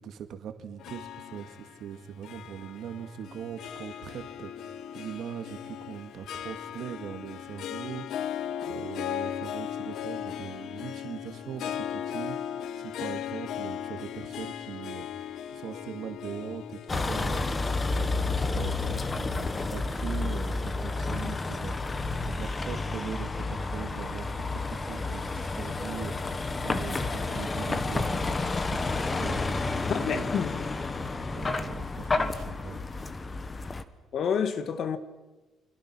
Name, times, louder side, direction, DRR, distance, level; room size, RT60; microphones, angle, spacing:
voice 1, 0.0-15.1 15.5-22.0 22.2-29.7 30.0-30.3 31.3-32.8, right 8 dB, 65° right, 2.0 m, -41 dB
Harp, 0.8-19.2, left 10 dB, 75° left, 1.0 m, -38 dB
Vehicle, 16.9-33.8, left 3 dB, 25° left, 1.2 m, -30 dB
voice 2, 29.9-30.6 34.1-35.0, left 7 dB, 55° left, 1.7 m, -29 dB
29.5 x 26.0 x 6.1 m
cardioid pair, 145°, 0 cm